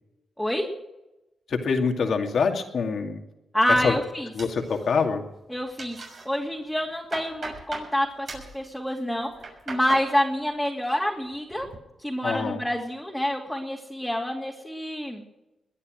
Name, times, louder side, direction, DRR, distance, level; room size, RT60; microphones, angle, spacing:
voice 1, 0.4-0.7 3.5-4.3 5.5-6.0 6.2-9.3 9.7-11.7 12.0-15.2, equal, 5° left, -2 dB, 2.7 m, -27 dB
voice 2, 1.5-3.2 3.8-3.9 4.3-5.2 12.2-12.6, left 5 dB, 70° left, 4 dB, 2.4 m, -25 dB
sound 1, 4.4-5.2 5.5-6.3 6.7-7.9 8.3-8.6 9.2-10.1 10.4-11.0 11.3-11.8, right 3 dB, 65° right, 6.4 m, -39 dB
21.5 x 9.9 x 6.5 m, 0.97 s
cardioid pair, 65°, 0 cm